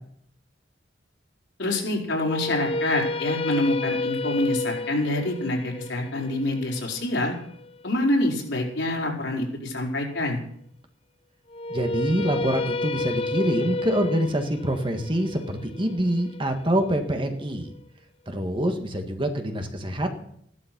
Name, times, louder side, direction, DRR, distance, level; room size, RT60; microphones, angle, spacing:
voice 1, 1.6-7.3 7.8-10.4, left 1 dB, 85° left, -1 dB, 4.8 m, -26 dB
sound 1, 2.2-8.3 11.5-17.6, left 2 dB, 30° left, 0.5 m, -31 dB
voice 2, 11.7-17.7 18.3-20.1, right 1 dB, 30° right, 5 dB, 1.8 m, -25 dB
15.0 x 12.0 x 6.2 m, 0.68 s
head